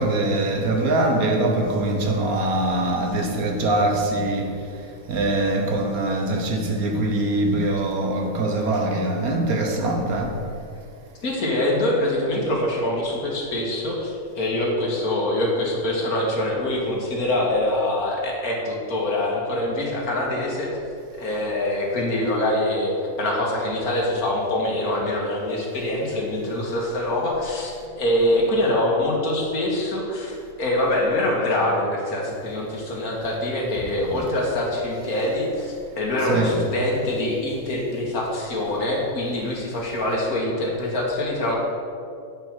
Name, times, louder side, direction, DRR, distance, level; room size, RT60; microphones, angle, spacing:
voice 1, 0.0-4.6 5.1-10.4 34.1-34.2 36.3-36.6, right 2 dB, 80° right, 2 dB, 1.6 m, -23 dB
voice 2, 11.2-20.7 21.2-41.6, left 1 dB, 75° left, -2 dB, 2.1 m, -24 dB
8.4 x 5.6 x 5.9 m, 2.5 s
omnidirectional pair, 1.5 m